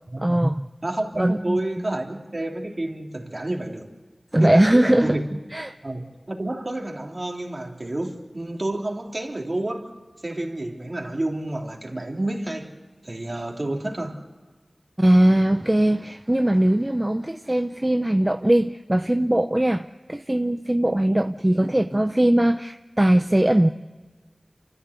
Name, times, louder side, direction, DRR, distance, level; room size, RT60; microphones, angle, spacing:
voice 1, 0.2-0.7 1.2-1.6 4.3-5.2 5.5-5.7 15.0-23.7, right 1 dB, 20° right, 0.7 m, -20 dB
voice 2, 0.8-3.9 4.4-4.7 5.0-5.4 5.8-9.9 10.2-12.8 13.0-14.2 21.6-21.7, right 1 dB, 45° right, 3.2 m, -29 dB
28.5 x 14.0 x 8.2 m
wide cardioid pair, 50°, 0 cm